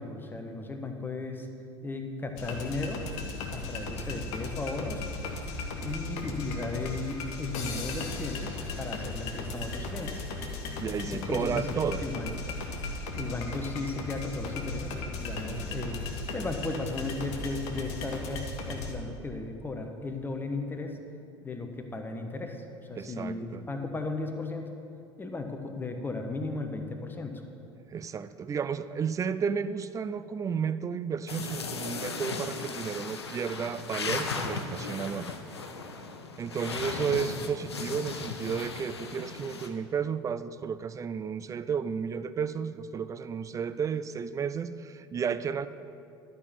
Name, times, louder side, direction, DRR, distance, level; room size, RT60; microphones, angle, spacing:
voice 1, 0.0-1.5 1.8-3.0 3.5-5.1 5.8-10.2 11.1-12.6 13.2-16.0 16.3-21.0 21.4-22.6 22.9-24.7 25.2-27.4, left 3 dB, 15° left, 5 dB, 1.1 m, -35 dB
sound 1, 2.4-18.9, left 3 dB, 55° left, 1.3 m, -36 dB
voice 2, 10.8-12.0 22.9-23.6 27.9-35.3 36.4-45.7, right 6 dB, 25° right, 13 dB, 0.4 m, -32 dB
sound 2, 31.3-39.7, left 4 dB, 80° left, 0.7 m, -36 dB
12.0 x 5.4 x 7.1 m, 2.5 s
figure-of-eight pair, 70°, 14 cm